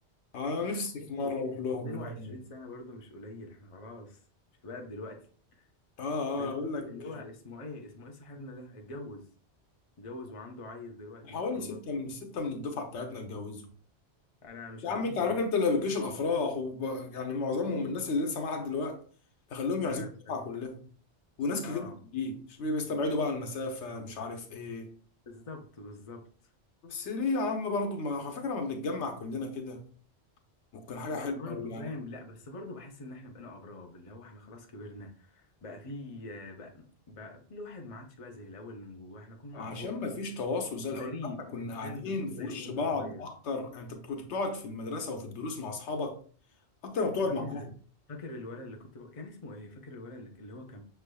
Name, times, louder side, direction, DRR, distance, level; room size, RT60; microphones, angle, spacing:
voice 1, 0.3-2.3 6.0-6.9 11.3-13.7 14.8-19.0 19.5-20.8 21.4-21.9 22.1-24.9 26.8-29.8 30.7-31.8 39.5-41.1 41.5-46.2 46.8-47.6, left 3 dB, 85° left, 1.1 m, -33 dB
voice 2, 1.0-1.4 1.7-4.2 4.6-5.2 5.5-5.6 6.4-9.3 10.0-11.8 14.4-15.4 19.8-20.4 21.6-22.0 25.3-26.3 31.1-39.9 40.9-43.2 47.3-47.7 48.1-50.8, left 2 dB, 35° left, 0.7 m, -44 dB
6.3 x 3.4 x 2.2 m
omnidirectional pair, 1.2 m